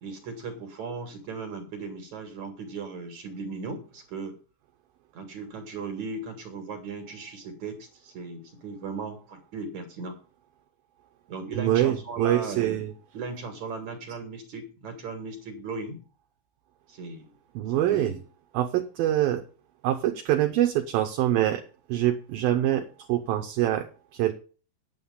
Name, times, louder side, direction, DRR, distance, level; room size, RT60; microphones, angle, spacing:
voice 1, 0.0-4.3 5.1-10.2 11.3-12.8 13.1-16.0 16.9-17.3 17.9-18.2, right 4 dB, 50° right, 5 dB, 2.7 m, -37 dB
voice 2, 11.5-12.9 17.6-18.2 18.5-19.4 19.8-21.6 21.9-23.9 24.1-24.3, right 13 dB, 75° right, 5 dB, 2.3 m, -25 dB
9.6 x 9.0 x 5.4 m, 0.37 s
omnidirectional pair, 5.0 m